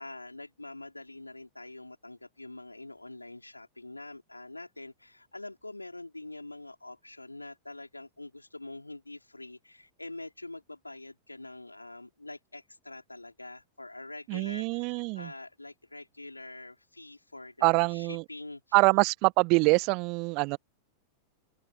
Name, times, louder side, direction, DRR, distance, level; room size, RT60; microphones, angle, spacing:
voice 1, 0.0-18.8, left 2 dB, 85° left, 5.2 m, -45 dB
voice 2, 14.3-15.3 17.6-18.2 18.7-20.6, right 29 dB, 45° right, 1.4 m, -25 dB
figure-of-eight pair, 90°, 0 cm